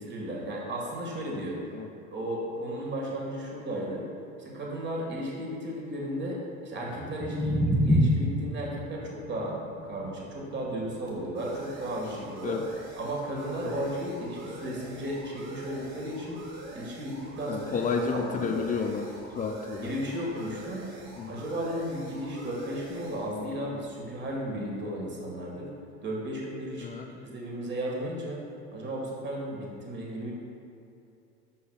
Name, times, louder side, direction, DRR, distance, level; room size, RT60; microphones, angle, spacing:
voice 1, 0.0-1.6 2.1-4.1 4.4-9.6 9.8-12.6 13.0-16.4 16.7-18.7 19.8-20.9 21.3-25.7 26.0-26.9 27.2-28.4 28.7-30.3, right 1 dB, 25° right, -2 dB, 1.6 m, -34 dB
sound 1, 6.7-12.8, equal, ahead, 0.9 m, -29 dB
sound 2, 9.6-24.9, right 1 dB, 80° right, 1.6 m, -45 dB
voice 2, 17.5-19.9 21.2-21.4 26.8-27.1, left 5 dB, 20° left, 4 dB, 0.3 m, -31 dB
11.5 x 5.3 x 2.3 m, 2.6 s
hypercardioid pair, 90°, 40 cm